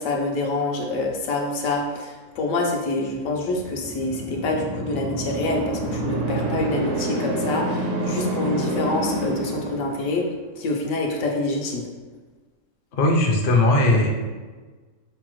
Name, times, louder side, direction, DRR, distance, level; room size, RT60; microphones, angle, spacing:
voice 1, 0.0-10.3 10.6-11.9, left 2 dB, 75° left, 0 dB, 1.0 m, -26 dB
sound 1, 3.4-10.4, right 1 dB, 70° right, 0.9 m, -28 dB
voice 2, 12.9-14.1, left 2 dB, 55° left, 0 dB, 0.5 m, -18 dB
5.6 x 2.0 x 3.0 m, 1.3 s
omnidirectional pair, 1.5 m